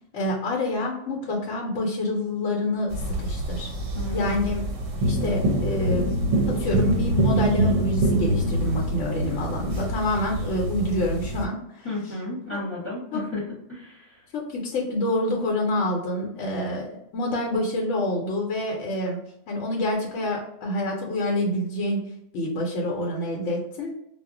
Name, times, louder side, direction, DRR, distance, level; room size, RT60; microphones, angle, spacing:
voice 1, 0.1-2.9 3.2-3.7 4.1-4.6 5.0-6.1 6.5-11.9 12.5-12.6 13.1-13.2 14.3-19.2 19.5-22.1 22.3-23.9, left 1 dB, 80° left, -1 dB, 1.0 m, -27 dB
sound 1, 2.9-11.5, right 1 dB, 85° right, 1.0 m, -25 dB
voice 2, 3.9-4.3 11.8-13.4 13.7-14.2, left 2 dB, 10° left, -8 dB, 0.9 m, -33 dB
2.3 x 2.0 x 3.6 m, 0.77 s
omnidirectional pair, 1.3 m